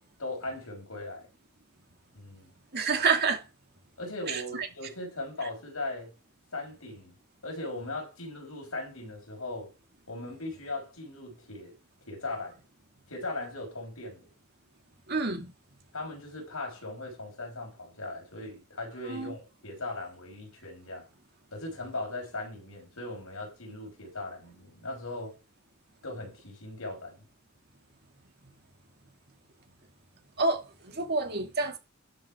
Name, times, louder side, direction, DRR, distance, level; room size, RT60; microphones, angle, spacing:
voice 1, 0.2-1.3 2.1-2.5 4.0-6.1 6.5-7.2 7.4-9.7 10.1-11.7 12.1-12.6 13.1-14.3 15.9-21.1 21.5-25.4 26.0-27.3, left 2 dB, 85° left, 5.7 m, -38 dB
voice 2, 2.7-3.4 4.3-4.7 15.1-15.5 19.1-19.3 30.4-31.8, right 4 dB, 50° right, 2.3 m, -28 dB
12.5 x 5.7 x 4.8 m
head